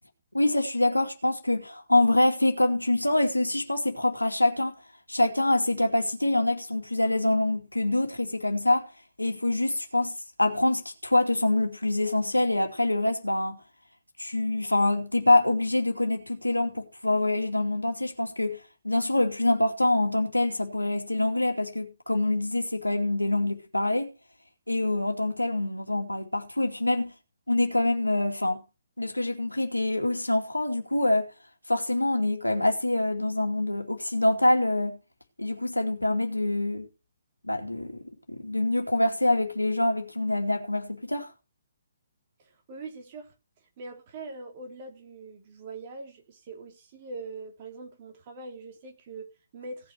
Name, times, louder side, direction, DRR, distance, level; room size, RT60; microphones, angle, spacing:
voice 1, 0.3-4.8 5.1-8.9 9.2-13.6 14.2-18.6 18.8-24.1 24.7-27.1 27.5-28.6 29.0-31.3 31.7-35.0 35.4-36.9 37.4-41.3, left 2 dB, 85° left, 2.6 m, -25 dB
voice 2, 42.4-43.3 43.8-49.9, right 3 dB, 35° right, 3.5 m, -42 dB
17.5 x 6.1 x 6.4 m
figure-of-eight pair, 135°, 0 cm